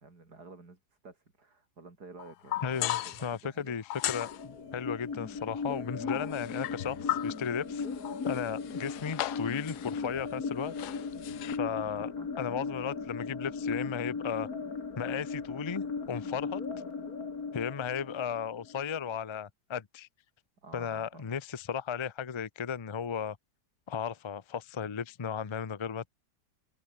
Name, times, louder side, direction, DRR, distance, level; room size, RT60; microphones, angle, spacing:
voice 1, 0.0-3.8 11.7-12.3 20.6-21.3, right 3 dB, 65° right, 4.9 m, -52 dB
sound 1, 2.2-3.3 3.9-4.4 6.0-7.5 7.9-10.4 10.6-11.6, left 14 dB, 75° left, 1.2 m, -37 dB
voice 2, 2.6-7.9 8.2-10.7 11.5-12.1 12.4-14.5 15.0-16.6 17.5-20.1 20.7-23.4 23.9-26.1, left 7 dB, 35° left, 0.4 m, -35 dB
sound 2, 4.0-19.0, left 4 dB, 55° left, 3.0 m, -37 dB
omnidirectional pair, 1.8 m